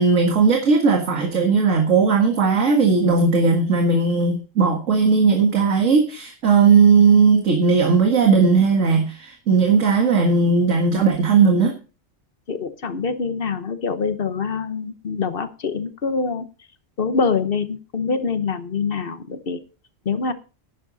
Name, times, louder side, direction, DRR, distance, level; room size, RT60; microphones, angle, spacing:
voice 1, 0.0-11.7, right 5 dB, 80° right, 2 dB, 2.1 m, -17 dB
voice 2, 12.5-16.4 17.0-19.6 20.0-20.3, left 5 dB, 50° left, 11 dB, 1.2 m, -25 dB
11.5 x 10.5 x 4.0 m, 0.34 s
omnidirectional pair, 1.3 m